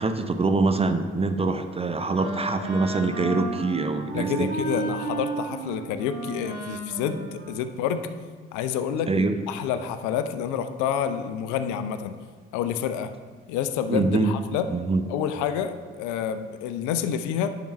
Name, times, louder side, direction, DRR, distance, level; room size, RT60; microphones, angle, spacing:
voice 1, 0.0-4.5 9.1-9.3 13.9-14.3 14.7-15.1, right 3 dB, 15° right, 8 dB, 0.6 m, -24 dB
Wind instrument woodwind instrument, 1.6-8.3, right 3 dB, 90° right, 1.4 m, -34 dB
voice 2, 4.1-8.0 8.5-12.1 12.5-13.1 13.5-14.7 15.1-17.5, left 8 dB, 60° left, 10 dB, 0.6 m, -28 dB
10.0 x 5.8 x 3.1 m, 1.5 s
figure-of-eight pair, 45°, 35 cm